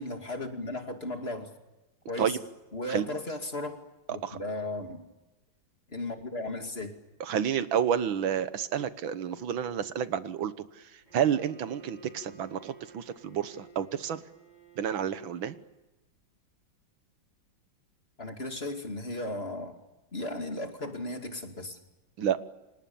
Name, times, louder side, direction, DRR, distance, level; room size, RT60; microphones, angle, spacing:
voice 1, 0.0-1.5 2.1-2.4 2.7-5.0 5.9-7.0 18.2-19.8 20.1-21.8, left 2 dB, 30° left, 4 dB, 2.7 m, -36 dB
voice 2, 7.2-14.2 14.8-15.6 22.2-22.4, right 8 dB, 80° right, 12 dB, 1.9 m, -30 dB
Bowed string instrument, 11.0-15.8, right 3 dB, 20° right, 6.4 m, -54 dB
29.5 x 26.5 x 7.1 m, 1.0 s
omnidirectional pair, 2.2 m